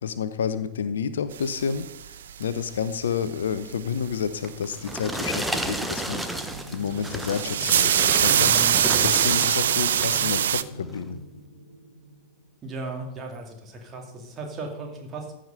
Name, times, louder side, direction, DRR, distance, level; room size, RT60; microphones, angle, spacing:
voice 1, 0.0-6.2 6.7-8.5 9.0-11.2, left 7 dB, 65° left, 13 dB, 0.6 m, -29 dB
sound 1, 1.4-2.4 3.7-4.2 6.4-6.6 6.9-10.6, right 10 dB, 60° right, 0.4 m, -22 dB
sound 2, 4.4-9.6 9.9-10.3 10.9-11.0, right 1 dB, 5° right, 0.9 m, -32 dB
sound 3, 5.8-12.9, right 2 dB, 80° right, 1.2 m, -43 dB
voice 2, 8.3-9.2 12.6-15.3, right 2 dB, 25° right, 2 dB, 2.4 m, -36 dB
15.0 x 5.1 x 5.6 m, 0.89 s
figure-of-eight pair, 90°, 0 cm